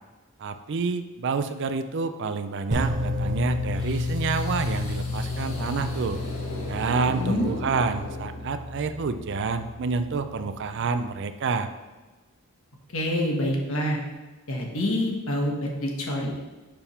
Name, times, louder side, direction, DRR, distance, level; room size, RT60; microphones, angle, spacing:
voice 1, 0.4-6.2 6.7-11.7, right 4 dB, 55° right, 10 dB, 0.4 m, -28 dB
sound 1, 2.7-10.8, left 2 dB, 35° right, 1.2 m, -31 dB
sound 2, 3.7-8.8, left 1 dB, 90° left, 1.5 m, -39 dB
voice 2, 12.9-14.0 14.5-16.5, left 1 dB, 65° left, 0 dB, 1.3 m, -27 dB
6.8 x 3.5 x 5.6 m, 1.2 s
head